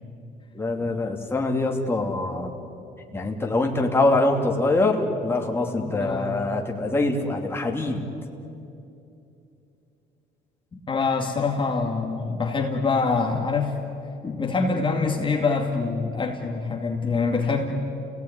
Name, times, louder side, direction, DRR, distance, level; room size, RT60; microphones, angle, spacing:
voice 1, 0.5-2.5 3.1-8.0, left 2 dB, 15° left, 1 dB, 2.8 m, -24 dB
voice 2, 5.9-6.4 10.9-13.8 14.2-17.7, left 4 dB, 30° left, 0 dB, 2.4 m, -25 dB
30.0 x 18.0 x 9.8 m, 2.8 s
cardioid pair, 110°, 17 cm